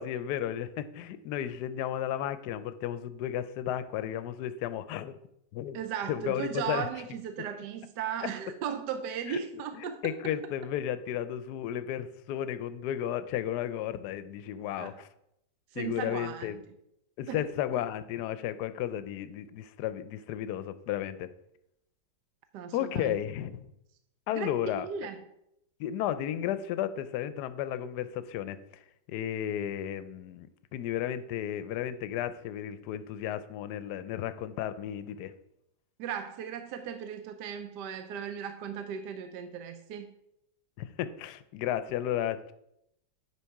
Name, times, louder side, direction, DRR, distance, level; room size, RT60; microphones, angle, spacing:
voice 1, 0.0-5.2 5.5-5.8 6.1-6.9 9.3-15.1 15.8-16.6 17.2-21.3 22.7-23.6 24.3-24.9 25.8-28.6 29.1-35.3 40.8-42.5, left 11 dB, 70° left, 12 dB, 1.1 m, -33 dB
voice 2, 5.7-10.3 14.8-15.0 15.7-16.6 17.3-17.5 22.5-23.2 24.3-25.2 36.0-40.1, right 8 dB, 75° right, 8 dB, 1.1 m, -37 dB
10.0 x 5.1 x 4.6 m, 0.79 s
omnidirectional pair, 2.0 m